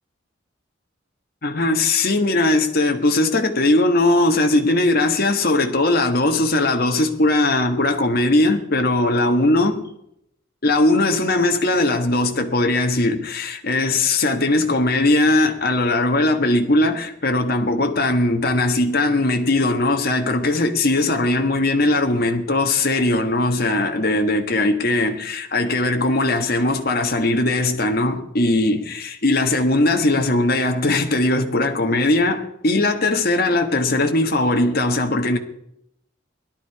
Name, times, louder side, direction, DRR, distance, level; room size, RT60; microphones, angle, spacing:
voice 1, 1.4-9.8 10.6-35.4, left 2 dB, 50° left, 1.5 m, -19 dB
17.0 x 12.0 x 4.8 m
head